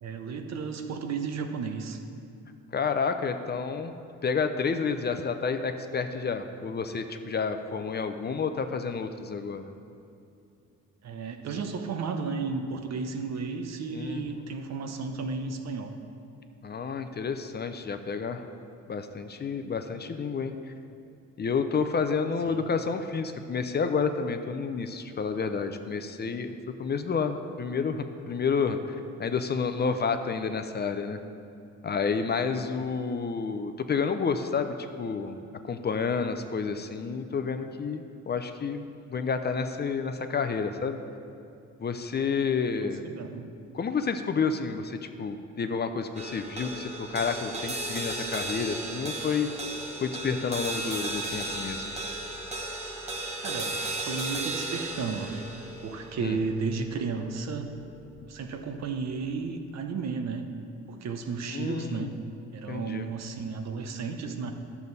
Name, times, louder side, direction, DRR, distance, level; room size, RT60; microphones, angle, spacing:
voice 1, 0.0-2.0 11.0-16.0 22.5-22.7 42.7-43.5 53.4-55.4 55.8-57.7 58.3-60.5 60.9-62.1 62.5-64.5, right 4 dB, 60° right, 6 dB, 0.8 m, -33 dB
voice 2, 2.7-3.9 4.2-9.6 13.9-14.4 16.6-18.4 18.9-20.5 21.4-26.5 26.8-31.2 31.8-35.4 35.6-41.0 41.8-43.0 43.7-49.5 50.0-51.8 56.2-56.4 61.5-62.1 62.7-63.0, left 5 dB, 35° left, 8 dB, 0.5 m, -30 dB
sound 1, 46.1-58.6, right 2 dB, 20° right, 1.2 m, -35 dB
10.5 x 7.0 x 4.0 m, 2.5 s
cardioid pair, 90°, 30 cm